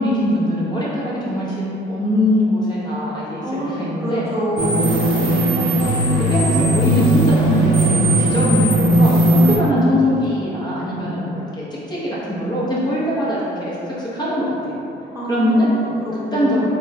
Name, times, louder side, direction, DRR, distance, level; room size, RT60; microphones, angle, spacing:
voice 1, 0.0-3.4 3.7-4.3 5.2-5.5 5.8-14.8 15.3-16.0 16.3-16.8, left 1 dB, 20° left, -8 dB, 0.9 m, -22 dB
voice 2, 3.4-4.8 15.1-16.6, equal, 15° right, -10 dB, 0.7 m, -26 dB
sound 1, 4.6-9.6, right 1 dB, 85° right, 0.6 m, -17 dB
3.4 x 2.2 x 2.7 m, 2.8 s
cardioid pair, 90°, 20 cm